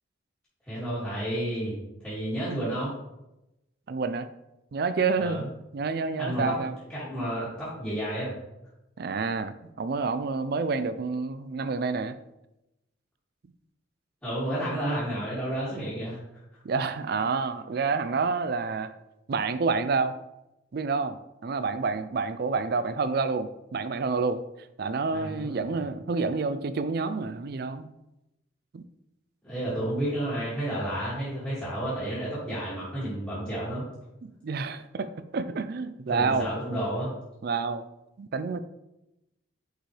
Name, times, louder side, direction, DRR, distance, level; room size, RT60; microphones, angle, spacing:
voice 1, 0.7-2.9 5.2-5.4 6.2-6.6 6.9-8.3 14.2-16.2 25.1-25.6 29.4-33.8 36.1-37.1, right 1 dB, 10° left, -13 dB, 2.2 m, -31 dB
voice 2, 3.9-4.3 4.7-5.4 5.7-6.7 9.0-12.2 16.6-18.9 19.3-20.1 20.7-24.4 24.8-27.9 28.7-28.8 34.2-36.5 37.4-37.8 38.2-38.6, right 4 dB, 50° right, 12 dB, 0.4 m, -28 dB
6.2 x 5.3 x 3.2 m, 0.91 s
head